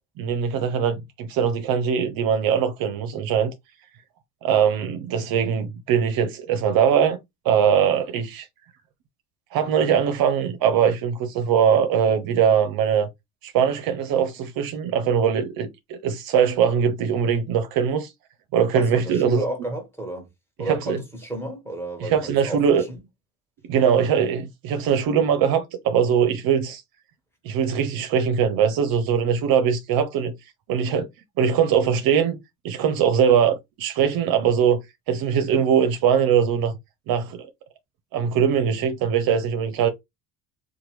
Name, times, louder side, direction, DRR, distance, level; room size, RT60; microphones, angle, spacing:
voice 1, 0.2-3.5 4.4-7.2 7.4-8.5 9.5-13.1 13.4-18.1 18.5-19.4 20.7-21.0 22.0-22.8 23.7-26.8 27.4-30.3 30.7-31.1 31.4-32.4 32.6-34.8 35.1-36.7 37.1-37.5 38.1-39.9, right 7 dB, 55° right, 0.6 m, -21 dB
voice 2, 18.7-20.3 20.6-23.0, right 1 dB, 5° left, 1.4 m, -32 dB
2.9 x 2.2 x 3.1 m
hypercardioid pair, 65°, 42 cm